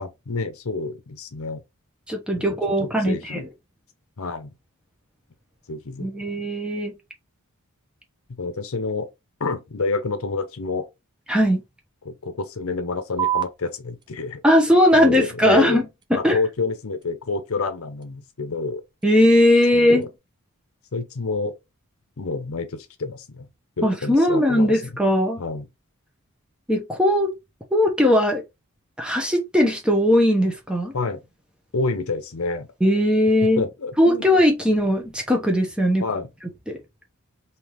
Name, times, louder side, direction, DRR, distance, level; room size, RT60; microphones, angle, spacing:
voice 1, 0.0-1.6 2.3-3.5 4.2-4.5 5.7-6.1 8.4-9.1 9.4-10.9 12.1-14.4 14.9-15.8 16.1-18.8 19.7-20.1 20.9-21.6 22.2-23.5 23.8-24.8 25.4-25.7 30.9-31.2 31.7-32.7 33.6-34.2 36.0-36.3, left 3 dB, 70° left, 0.7 m, -28 dB
voice 2, 2.1-3.5 6.0-6.9 11.3-11.6 14.4-15.8 16.1-16.4 19.0-20.1 23.8-25.4 26.7-27.3 27.7-28.4 29.0-30.9 32.8-33.6 34.0-36.0 36.7-36.8, left 1 dB, 5° right, 0.8 m, -19 dB
sound 1, 13.2-20.2, right 11 dB, 20° right, 0.3 m, -35 dB
3.4 x 2.8 x 3.0 m
head